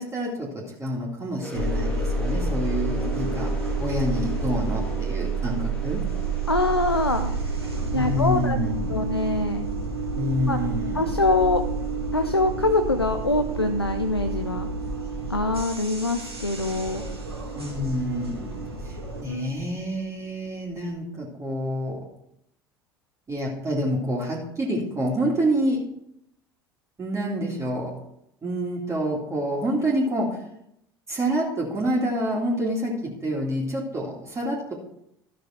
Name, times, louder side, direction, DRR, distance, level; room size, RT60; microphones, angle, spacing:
voice 1, 0.0-3.5 3.8-6.0 7.9-9.0 10.1-11.0 17.5-22.0 23.3-25.8 27.0-27.9 28.4-30.4 31.1-34.7, equal, 20° right, -2 dB, 2.3 m, -27 dB
sound 1, 1.4-9.0, left 2 dB, 10° left, 1.7 m, -41 dB
sound 2, 1.5-19.2, right 3 dB, 85° right, 1.8 m, -29 dB
voice 2, 6.5-7.3 7.9-8.6 8.9-9.7 10.5-10.6 10.9-11.6 12.1-14.7 15.3-17.0 19.3-19.5, left 2 dB, 90° left, 7 dB, 0.5 m, -24 dB
13.5 x 6.3 x 4.3 m, 0.77 s
figure-of-eight pair, 70°, 13 cm